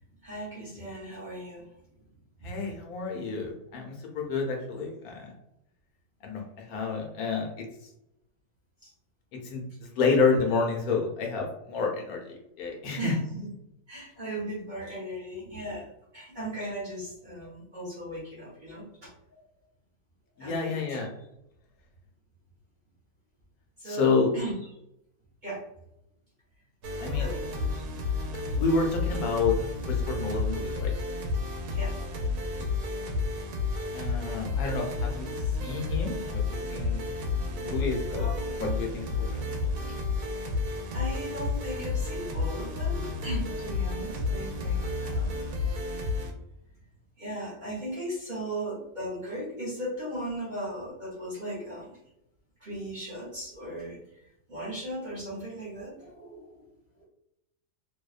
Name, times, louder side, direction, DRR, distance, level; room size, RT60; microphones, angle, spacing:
voice 1, 0.2-1.7 2.4-2.5 8.8-8.9 13.0-13.5 13.9-15.9 16.1-19.1 20.4-21.0 23.8-24.5 25.4-25.6 27.2-27.4 31.7-31.9 32.6-32.7 38.2-38.7 39.7-39.8 40.9-45.4 47.2-52.0 52.6-54.0 54.5-56.7, right 1 dB, 40° right, -7 dB, 0.8 m, -37 dB
voice 2, 2.4-5.3 6.2-7.7 9.4-13.1 20.4-21.1 23.8-24.3 27.0-27.3 28.5-29.5 29.8-30.9 33.9-37.1 37.5-38.3 38.6-39.4, left 4 dB, 75° left, 1 dB, 1.0 m, -29 dB
sound 1, 26.8-46.3, left 3 dB, 80° right, 1.1 m, -31 dB
2.7 x 2.1 x 2.3 m, 0.83 s
omnidirectional pair, 1.6 m